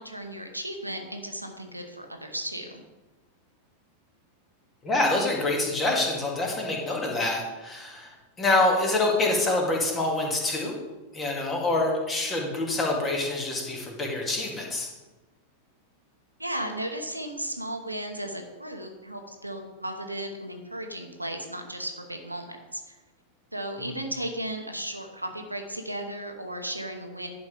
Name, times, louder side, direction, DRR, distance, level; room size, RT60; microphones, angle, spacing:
voice 1, 0.0-2.8 16.4-23.0 23.5-27.3, right 1 dB, 85° right, 4 dB, 1.1 m, -35 dB
voice 2, 4.8-8.1 8.4-10.7 11.1-14.9 23.8-23.9, left 2 dB, 20° left, -1 dB, 2.4 m, -26 dB
11.0 x 5.2 x 5.1 m, 1.2 s
figure-of-eight pair, 90°, 0 cm